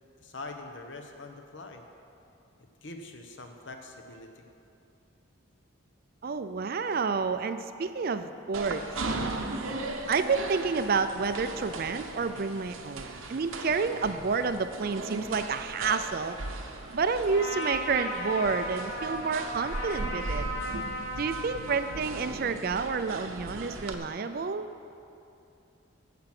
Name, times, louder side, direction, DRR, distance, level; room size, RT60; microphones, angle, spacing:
voice 1, 0.2-1.8 2.8-4.5 14.0-14.3, left 2 dB, 60° left, 4 dB, 1.0 m, -44 dB
voice 2, 6.2-9.5 10.1-16.4 16.9-20.5 21.2-24.7, right 5 dB, 45° right, 10 dB, 0.4 m, -30 dB
sound 1, 8.5-23.9, right 2 dB, 85° right, 0.9 m, -38 dB
Trumpet, 17.3-22.2, equal, 90° left, 2.4 m, -36 dB
15.5 x 5.9 x 5.9 m, 2.8 s
head